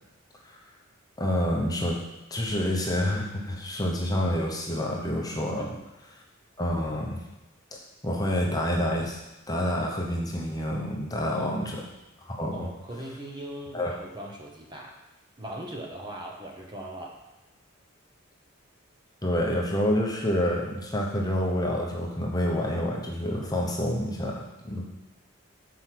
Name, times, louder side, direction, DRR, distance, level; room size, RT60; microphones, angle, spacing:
voice 1, 1.2-2.0 2.3-5.7 6.6-7.2 8.0-9.2 9.5-11.8 12.3-12.7 13.7-14.0 19.2-24.8, equal, 20° left, -1 dB, 0.9 m, -28 dB
voice 2, 11.4-11.7 12.5-15.0 15.4-17.2, right 1 dB, 20° right, 0 dB, 0.9 m, -40 dB
6.3 x 4.7 x 5.9 m, 1.1 s
head